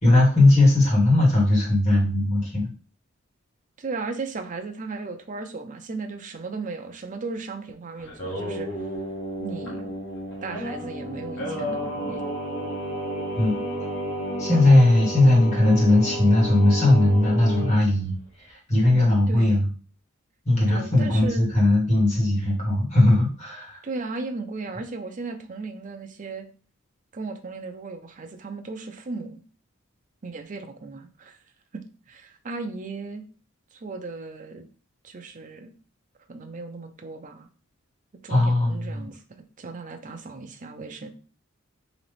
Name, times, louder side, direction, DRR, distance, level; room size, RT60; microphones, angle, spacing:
voice 1, 0.0-2.7 13.4-13.5 14.4-19.7 20.5-23.8 38.3-39.1, left 2 dB, 35° left, -4 dB, 2.0 m, -19 dB
voice 2, 3.8-8.7 9.4-9.9 10.4-12.3 19.3-19.6 20.7-21.5 23.8-26.5 27.1-29.4 30.2-31.4 31.7-33.2 33.8-34.7 35.0-35.7 36.3-37.5 38.2-39.2 39.6-41.1, right 3 dB, 40° right, 6 dB, 0.5 m, -36 dB
Singing, 8.0-17.7, equal, 60° left, 1.3 m, -31 dB
3.9 x 2.9 x 3.3 m, 0.38 s
head